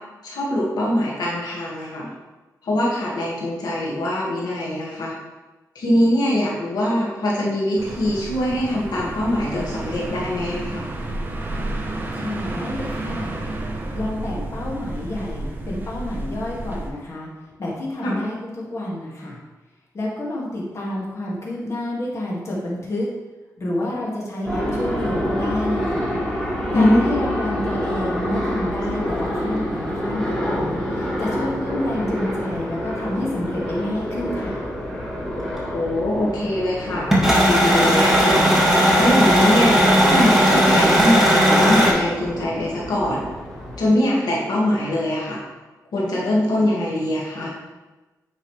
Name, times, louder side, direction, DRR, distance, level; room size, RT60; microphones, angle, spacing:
voice 1, 0.2-2.1 2.6-5.1 5.8-10.9 18.0-18.2 26.7-27.0 35.6-38.4 39.0-43.2 43.8-45.4 45.9-47.5, left 1 dB, 85° left, -5 dB, 1.9 m, -22 dB
sound 1, 7.8-16.9, right 1 dB, 30° right, 1.0 m, -31 dB
voice 2, 12.1-13.4 13.9-17.3 17.6-19.4 19.9-23.1 23.6-26.2 26.7-34.7, left 1 dB, 45° left, -5 dB, 2.0 m, -29 dB
sound 2, 24.4-43.8, equal, 10° left, 2.0 m, -28 dB
sound 3, 37.1-41.9, equal, 5° right, 2.0 m, -16 dB
9.1 x 5.6 x 3.3 m, 1.2 s
wide cardioid pair, 105°, 7 cm